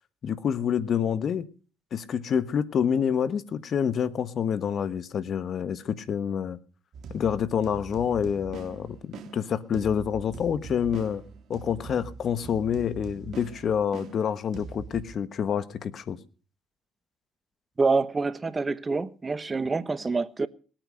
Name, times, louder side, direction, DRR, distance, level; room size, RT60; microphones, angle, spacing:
voice 1, 0.2-1.5 1.9-6.6 7.1-11.2 11.5-16.2, left 8 dB, 55° left, 1.3 m, -27 dB
sound 1, 6.9-15.2, right 5 dB, 65° right, 1.7 m, -43 dB
voice 2, 17.8-20.5, right 4 dB, 30° right, 1.1 m, -26 dB
20.5 x 9.0 x 6.4 m
supercardioid pair, 70°, 0 cm